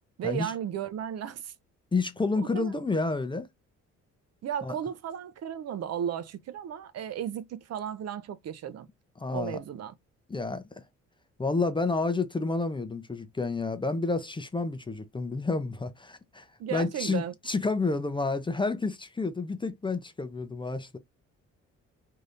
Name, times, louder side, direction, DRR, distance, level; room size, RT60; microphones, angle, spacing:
voice 1, 0.2-1.5 2.4-2.7 4.4-8.9 9.3-9.9 16.6-17.3, right 9 dB, 55° right, 0.5 m, -34 dB
voice 2, 1.9-3.5 4.6-4.8 9.2-9.6 10.3-10.8 11.4-21.0, left 3 dB, 15° left, 0.6 m, -30 dB
3.2 x 2.8 x 2.5 m
cardioid pair, 90°, 30 cm